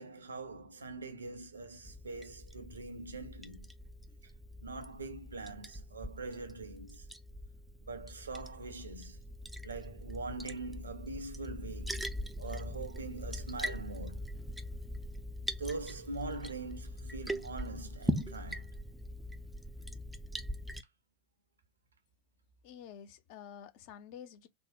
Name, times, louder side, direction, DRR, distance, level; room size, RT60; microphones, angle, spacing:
voice 1, 0.0-3.7 4.6-7.1 7.9-9.2 9.6-12.1 12.4-14.3 15.4-18.7, right 3 dB, 75° right, 0.7 m, -43 dB
Liquid, 1.9-20.8, equal, 5° right, 0.4 m, -42 dB
voice 2, 22.6-24.5, left 9 dB, 45° left, 0.5 m, -49 dB
3.5 x 2.1 x 2.5 m
figure-of-eight pair, 90°, 0 cm